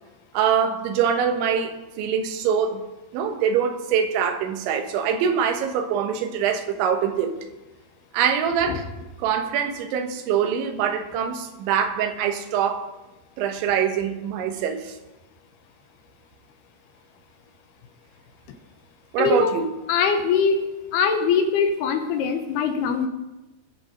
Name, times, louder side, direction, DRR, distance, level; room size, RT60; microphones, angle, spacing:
voice 1, 0.3-2.8 3.1-7.4 8.1-8.9 9.2-12.9 13.4-15.0 19.1-19.7, right 7 dB, 90° right, 7 dB, 3.5 m, -24 dB
voice 2, 19.2-19.6 19.9-20.6 20.9-23.1, left 5 dB, 75° left, 7 dB, 2.6 m, -22 dB
21.0 x 7.7 x 5.1 m, 1.0 s
omnidirectional pair, 5.2 m